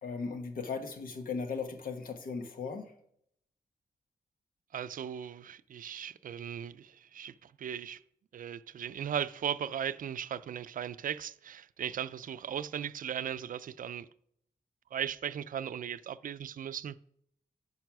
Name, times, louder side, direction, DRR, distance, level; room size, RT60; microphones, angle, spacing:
voice 1, 0.0-2.9, left 5 dB, 85° left, 1.2 m, -37 dB
voice 2, 4.7-8.0 8.3-14.1 14.9-17.0, right 9 dB, 75° right, 0.4 m, -37 dB
9.3 x 5.4 x 6.0 m
wide cardioid pair, 130°, 14 cm